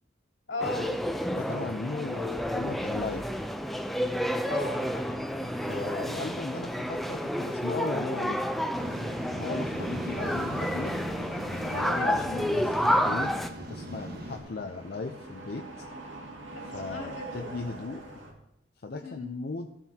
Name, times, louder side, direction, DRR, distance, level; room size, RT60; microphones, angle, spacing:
voice 1, 0.5-0.9 4.5-5.2 11.5-12.1 16.7-17.5 19.0-19.3, left 2 dB, 80° left, 0 dB, 2.7 m, -37 dB
sound 1, 0.6-13.5, equal, ahead, 0.5 m, -30 dB
voice 2, 1.3-3.3 5.5-8.4 9.2-10.9 11.7-13.3 13.7-15.7 16.7-18.0 18.8-19.7, left 3 dB, 55° left, 4 dB, 0.6 m, -36 dB
sound 2, 5.2-18.3, right 1 dB, 85° right, 2.2 m, -47 dB
Waves surf, 8.7-14.4, right 1 dB, 55° right, 1.4 m, -39 dB
15.5 x 7.2 x 2.9 m, 0.84 s
head